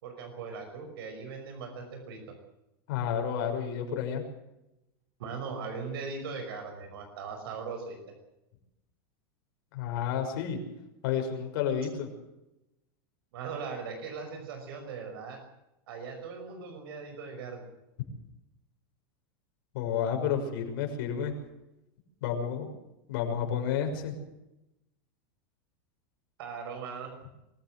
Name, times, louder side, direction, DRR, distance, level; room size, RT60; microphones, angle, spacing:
voice 1, 0.0-2.2 5.2-8.0 13.3-15.4 15.9-17.7 26.4-27.1, right 5 dB, 75° right, 5 dB, 5.6 m, -39 dB
voice 2, 2.9-4.2 9.7-10.6 11.0-12.1 19.7-21.3 22.2-22.7 23.1-24.1, left 8 dB, 60° left, 3 dB, 6.3 m, -30 dB
24.0 x 15.0 x 7.8 m, 0.91 s
supercardioid pair, 155°, 12 cm